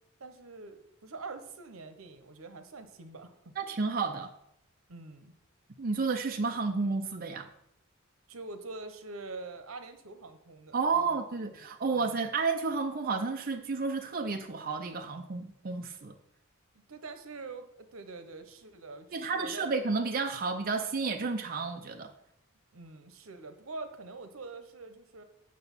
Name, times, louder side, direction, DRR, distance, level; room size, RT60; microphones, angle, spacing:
voice 1, 0.2-3.5 4.9-5.3 8.3-11.2 11.6-12.1 16.7-19.7 22.7-25.2, right 3 dB, 80° right, 8 dB, 1.0 m, -45 dB
voice 2, 3.6-4.3 5.8-7.5 10.7-16.2 19.1-22.1, right 4 dB, 45° right, 4 dB, 0.6 m, -31 dB
6.6 x 6.3 x 7.2 m, 0.79 s
head